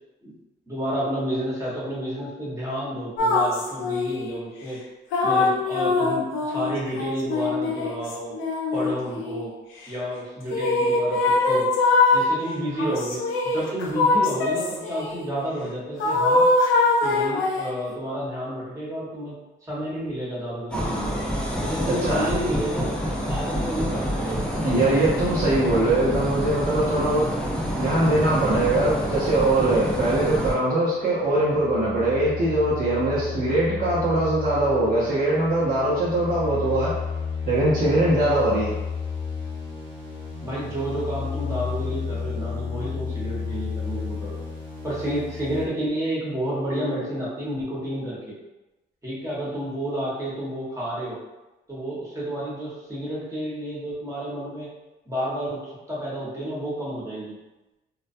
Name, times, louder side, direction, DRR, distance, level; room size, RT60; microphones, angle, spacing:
voice 1, 0.7-4.8 5.2-8.4 8.7-9.5 9.9-11.7 12.1-16.4 17.0-19.4 19.7-21.1 21.6-23.0 23.3-24.5 40.4-44.4 44.8-48.3 49.0-51.2 51.7-54.7 55.1-55.6 55.9-57.4, right 1 dB, 15° right, -7 dB, 1.1 m, -30 dB
sound 1, 3.2-4.3 5.1-9.5 10.5-12.3 12.8-15.2 16.0-17.8, left 3 dB, 85° left, 0.5 m, -22 dB
sound 2, 20.7-30.6, equal, 5° left, 0.5 m, -27 dB
voice 2, 21.8-22.3 24.6-27.2 27.8-36.9 37.5-38.8, right 2 dB, 45° right, -8 dB, 0.8 m, -22 dB
sound 3, 30.5-45.7, left 5 dB, 25° left, 0.9 m, -33 dB
2.2 x 2.2 x 2.6 m, 1.0 s
cardioid pair, 90°, 20 cm